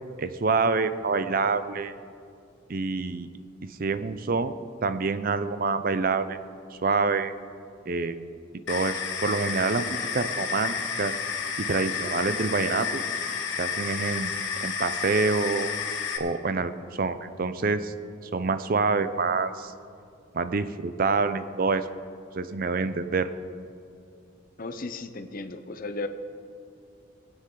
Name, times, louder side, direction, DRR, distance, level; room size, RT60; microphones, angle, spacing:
voice 1, 0.2-1.9 2.7-3.3 3.7-4.5 4.8-6.4 6.7-7.3 7.9-8.2 8.7-11.1 11.6-13.0 13.6-14.3 14.6-15.7 16.2-17.9 18.3-19.7 20.3-21.9 22.3-23.3, right 4 dB, 45° right, 12 dB, 0.5 m, -26 dB
sound 1, 8.7-16.2, left 6 dB, 70° left, 1.2 m, -31 dB
voice 2, 24.6-26.1, left 2 dB, 45° left, 8 dB, 0.7 m, -35 dB
20.5 x 9.3 x 3.8 m, 2.5 s
head